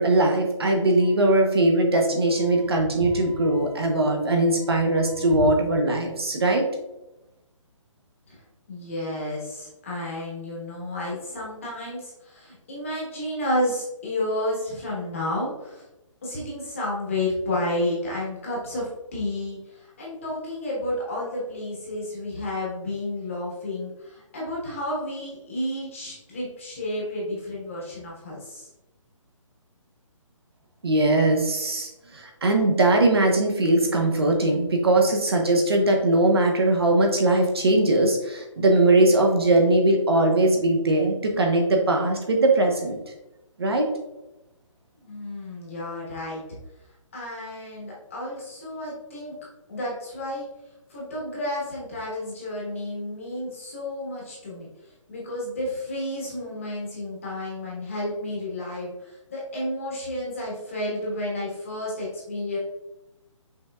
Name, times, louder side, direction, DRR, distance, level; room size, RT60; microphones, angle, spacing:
voice 1, 0.0-6.7 30.8-43.0 43.6-43.9, right 2 dB, 50° right, 2 dB, 0.7 m, -20 dB
voice 2, 2.6-3.7 4.7-5.1 8.3-8.4 8.7-15.8 16.2-28.7 45.0-46.4 47.1-49.3 49.7-50.5 50.9-54.7 55.1-62.6, left 1 dB, 25° left, -5 dB, 1.1 m, -31 dB
5.6 x 3.4 x 2.2 m, 0.93 s
hypercardioid pair, 180°, 17 cm